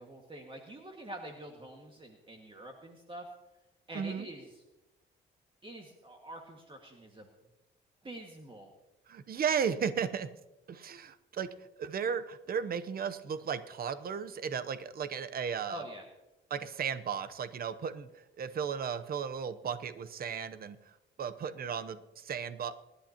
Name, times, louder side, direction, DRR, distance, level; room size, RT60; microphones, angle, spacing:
voice 1, 0.0-3.3 3.9-4.5 5.6-7.3 8.0-8.7 15.7-16.0, right 1 dB, 25° right, 2 dB, 1.9 m, -46 dB
voice 2, 3.9-4.3 9.1-10.3 10.7-11.5 11.8-15.8 16.5-18.1 18.4-20.8 21.2-22.7, right 7 dB, 50° right, 11 dB, 0.9 m, -35 dB
23.5 x 11.5 x 2.9 m, 0.99 s
cardioid pair, 90°, 20 cm